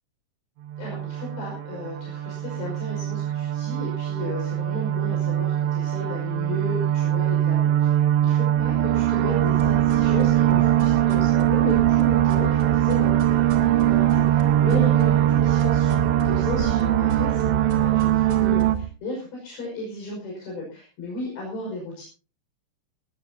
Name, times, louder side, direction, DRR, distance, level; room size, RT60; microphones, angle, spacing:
sound 1, 0.7-18.8, right 12 dB, 75° right, 3.2 m, -21 dB
voice 1, 0.8-22.0, left 1 dB, 65° left, -2 dB, 8.0 m, -34 dB
sound 2, 9.4-18.8, right 4 dB, 25° right, 3.9 m, -34 dB
20.0 x 19.0 x 2.8 m, 0.36 s
omnidirectional pair, 5.4 m